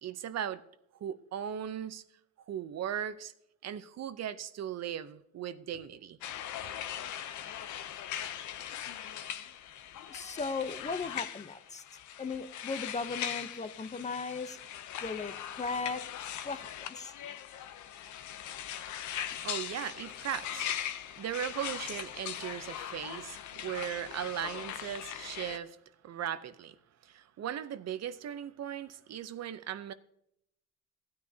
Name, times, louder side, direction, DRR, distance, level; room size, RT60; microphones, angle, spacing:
voice 1, 0.0-0.6 1.0-2.0 2.5-3.3 3.6-6.2 19.4-20.9 21.2-25.8 26.0-26.7 27.0-29.9, right 9 dB, 60° right, 0.6 m, -38 dB
sound 1, 6.2-25.6, left 10 dB, 75° left, 0.7 m, -40 dB
voice 2, 10.1-11.8 12.2-14.6 15.0-16.1 16.4-17.1, left 4 dB, 25° left, 0.7 m, -37 dB
15.5 x 9.5 x 2.7 m
cardioid pair, 90°, 30 cm